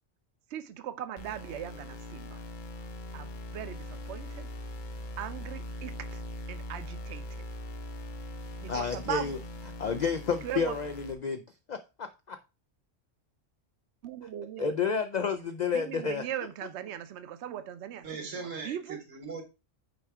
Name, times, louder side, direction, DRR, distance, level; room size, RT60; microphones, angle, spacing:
voice 1, 0.5-2.4 3.1-4.5 5.2-6.2 6.5-7.3 8.6-9.4 10.4-10.7 14.0-14.8 15.7-19.0, right 10 dB, 65° right, 0.9 m, -39 dB
sound 1, 1.2-11.1, left 1 dB, 45° left, 0.9 m, -41 dB
voice 2, 8.7-9.4 9.8-11.4 11.7-12.4 14.6-16.2, left 6 dB, 70° left, 0.4 m, -30 dB
voice 3, 18.0-19.4, right 5 dB, 85° right, 2.0 m, -39 dB
6.2 x 4.6 x 3.5 m
omnidirectional pair, 1.3 m